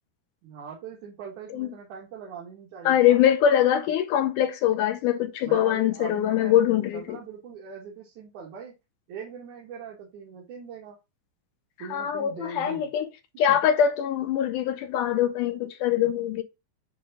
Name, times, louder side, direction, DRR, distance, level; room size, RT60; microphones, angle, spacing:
voice 1, 0.4-3.2 5.4-8.7 9.1-11.0 11.8-12.9 13.5-13.6, right 6 dB, 65° right, 3.0 m, -41 dB
voice 2, 2.9-7.2 11.9-13.1 13.4-16.4, left 10 dB, 75° left, 2.1 m, -23 dB
9.4 x 3.5 x 3.7 m
omnidirectional pair, 4.0 m